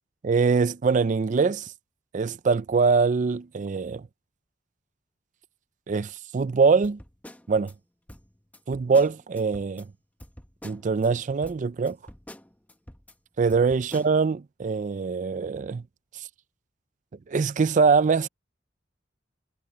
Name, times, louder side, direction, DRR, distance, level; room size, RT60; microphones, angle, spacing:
voice 1, 0.2-1.7 2.1-4.0 5.9-7.0 7.5-7.7 8.7-9.9 10.6-12.0 13.4-15.8 17.3-18.3, right 5 dB, 40° right, 0.4 m, -23 dB
sound 1, 6.8-7.7 8.1-9.9 10.2-11.1 11.4-13.1 13.5-14.1, left 1 dB, 10° left, 1.2 m, -47 dB
head